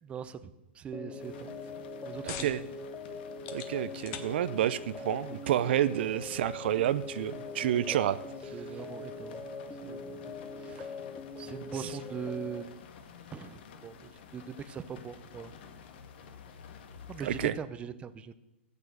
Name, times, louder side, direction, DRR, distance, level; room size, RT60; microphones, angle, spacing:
voice 1, 0.0-0.5 0.7-1.5 2.0-2.7 7.6-8.0 8.5-9.4 9.8-10.9 11.4-12.7 13.3-15.5 17.1-18.3, right 7 dB, 15° right, 12 dB, 0.7 m, -41 dB
sound 1, 0.9-12.6, left 3 dB, 15° left, 0.9 m, -42 dB
sound 2, 1.2-17.5, left 6 dB, 55° left, 1.8 m, -52 dB
sound 3, 1.6-16.8, left 9 dB, 40° left, 1.3 m, -53 dB
voice 2, 2.2-2.6 3.5-8.2 17.2-17.5, right 11 dB, 60° right, 15 dB, 0.6 m, -29 dB
13.5 x 8.4 x 6.7 m, 0.99 s
hypercardioid pair, 135°, 7 cm